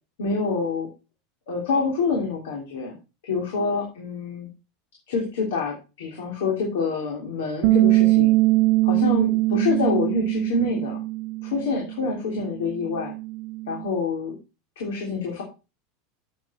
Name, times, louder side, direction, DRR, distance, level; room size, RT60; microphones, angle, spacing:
voice 1, 0.2-0.9 1.5-2.9 3.2-4.5 5.1-8.3 8.8-11.0 11.4-13.1 13.7-14.3 14.8-15.4, left 4 dB, 85° left, 0 dB, 3.1 m, -26 dB
Bass guitar, 7.6-13.9, right 20 dB, 45° right, 0.6 m, -22 dB
9.4 x 7.5 x 4.3 m, 0.30 s
supercardioid pair, 160°, 0 cm